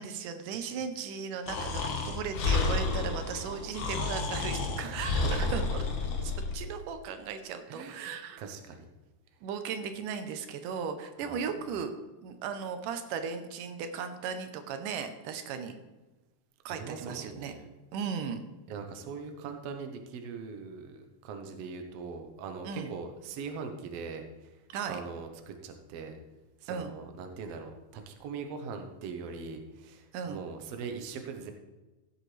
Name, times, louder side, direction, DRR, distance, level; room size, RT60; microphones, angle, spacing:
voice 1, 0.0-5.8 6.2-8.4 9.4-11.9 12.2-15.8 16.7-17.5 17.9-18.4 22.6-22.9 24.7-25.0 26.7-26.9 30.1-30.4, right 6 dB, 85° right, 8 dB, 2.4 m, -36 dB
Breathing, 1.5-6.6, left 3 dB, 70° left, 2.6 m, -30 dB
voice 2, 4.8-5.3 7.7-8.9 11.2-11.4 16.7-17.7 18.7-24.6 24.9-26.2 26.6-31.5, right 5 dB, 65° right, 5 dB, 1.8 m, -41 dB
16.0 x 7.7 x 3.3 m, 1.1 s
omnidirectional pair, 3.7 m